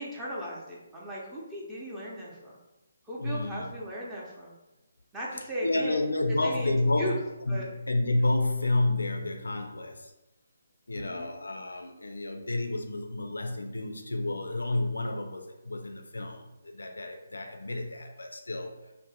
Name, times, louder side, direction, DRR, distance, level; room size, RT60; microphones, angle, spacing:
voice 1, 0.0-2.5 3.0-4.5 5.1-6.0 6.4-7.2 7.5-7.7 10.9-11.3, equal, 10° right, -6 dB, 0.7 m, -37 dB
voice 2, 3.2-3.7 5.6-7.1 7.5-10.1 10.9-18.8, left 2 dB, 80° left, 4 dB, 0.4 m, -30 dB
2.6 x 2.1 x 4.0 m, 0.98 s
figure-of-eight pair, 145°, 0 cm